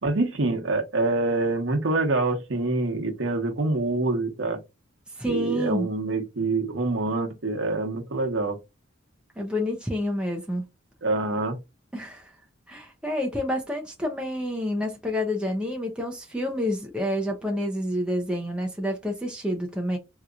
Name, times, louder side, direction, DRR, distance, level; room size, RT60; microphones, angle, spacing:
voice 1, 0.0-4.6 5.3-8.6 11.0-11.6, right 2 dB, 70° right, 1.0 m, -26 dB
voice 2, 5.2-5.9 9.4-10.6 11.9-12.3 12.7-20.0, left 1 dB, 5° right, 0.6 m, -28 dB
3.8 x 2.9 x 2.4 m
head